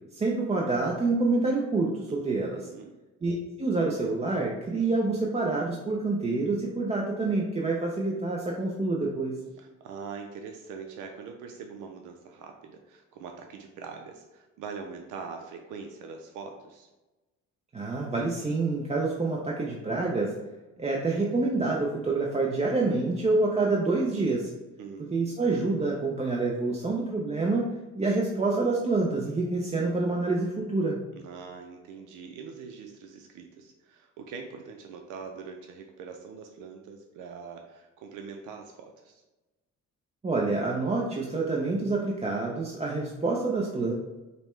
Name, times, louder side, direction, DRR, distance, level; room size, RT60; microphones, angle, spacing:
voice 1, 0.1-2.6 3.2-9.4 17.7-20.3 20.8-24.5 25.1-27.7 28.0-31.0 40.2-43.9, right 3 dB, 20° right, -2 dB, 0.5 m, -27 dB
voice 2, 2.1-2.9 9.6-16.9 24.8-25.3 31.2-39.2, right 5 dB, 85° right, 3 dB, 0.5 m, -43 dB
5.2 x 2.1 x 3.1 m, 1.1 s
cardioid pair, 90°, 30 cm